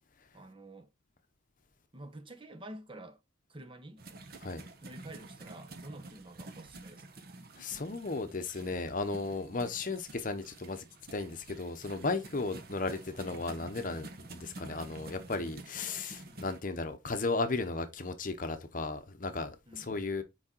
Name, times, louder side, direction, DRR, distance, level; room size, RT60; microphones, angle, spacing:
voice 1, 0.3-0.9 1.9-3.2 3.5-4.0 4.8-7.2 12.4-12.5 16.2-16.4 19.7-20.0, right 1 dB, 25° right, 1.0 m, -49 dB
sound 1, 4.0-16.6, right 2 dB, 50° right, 1.0 m, -49 dB
voice 2, 7.6-10.8 11.1-20.2, left 3 dB, 45° left, 0.8 m, -35 dB
6.3 x 4.8 x 4.4 m
head